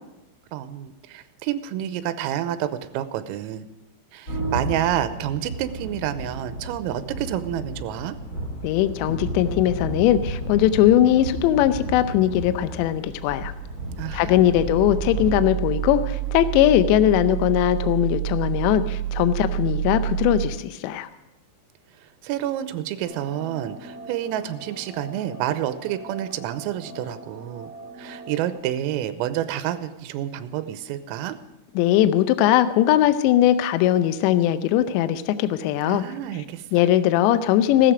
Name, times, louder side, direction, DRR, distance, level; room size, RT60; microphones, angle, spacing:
voice 1, 0.5-3.7 4.1-8.2 14.0-14.6 22.2-27.7 28.0-31.4 35.9-36.7, right 11 dB, 90° right, 11 dB, 3.4 m, -29 dB
sound 1, 4.3-15.3, right 1 dB, 25° left, 2.4 m, -33 dB
voice 2, 8.6-13.5 14.1-21.1 31.8-36.0 36.7-37.9, left 12 dB, 80° left, 11 dB, 2.6 m, -20 dB
sound 2, 13.0-20.5, right 13 dB, 50° right, 2.2 m, -29 dB
sound 3, 23.0-28.6, right 1 dB, 25° right, 2.1 m, -42 dB
16.5 x 13.5 x 5.1 m, 0.93 s
omnidirectional pair, 5.9 m